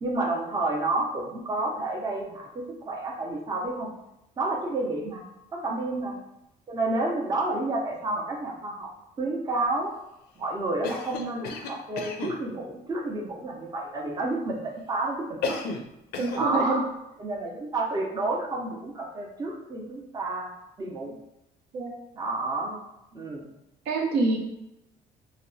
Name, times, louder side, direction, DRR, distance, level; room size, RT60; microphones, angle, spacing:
voice 1, 0.0-3.9 4.4-5.2 5.5-6.2 6.7-8.9 9.2-9.9 10.4-15.6 16.3-16.8 17.2-20.5 20.8-21.1 22.1-22.8 23.1-23.5, right 2 dB, 25° right, -2 dB, 0.5 m, -30 dB
Cough, 10.8-12.4 15.4-16.5, left 4 dB, 70° left, 0.4 m, -33 dB
voice 2, 16.2-16.8 21.7-21.9 23.9-24.4, right 3 dB, 75° right, 0 dB, 0.6 m, -26 dB
2.7 x 2.0 x 2.6 m, 0.88 s
cardioid pair, 110°, 17 cm